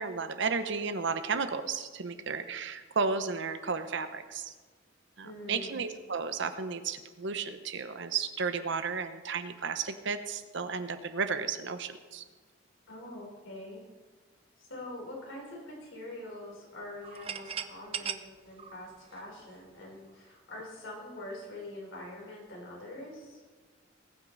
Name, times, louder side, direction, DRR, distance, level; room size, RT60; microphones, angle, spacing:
voice 1, 0.0-4.5 5.2-12.2, right 5 dB, 65° right, 10 dB, 0.9 m, -33 dB
voice 2, 5.2-5.9 12.9-13.8 14.6-23.4, left 1 dB, 75° left, -2 dB, 4.2 m, -44 dB
sound 1, 17.0-19.8, right 8 dB, 30° right, 0.5 m, -39 dB
20.5 x 9.0 x 4.0 m, 1.3 s
head